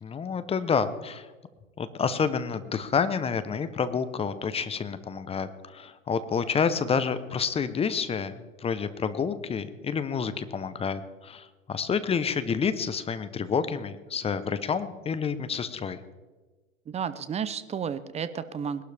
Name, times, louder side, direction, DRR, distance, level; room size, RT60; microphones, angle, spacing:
voice 1, 0.0-1.3 1.8-8.3 8.6-16.0, left 6 dB, 15° left, 12 dB, 0.8 m, -29 dB
voice 2, 16.9-18.8, right 7 dB, 15° right, 14 dB, 0.7 m, -32 dB
20.5 x 12.0 x 3.4 m, 1.2 s
hypercardioid pair, 110°, 40 cm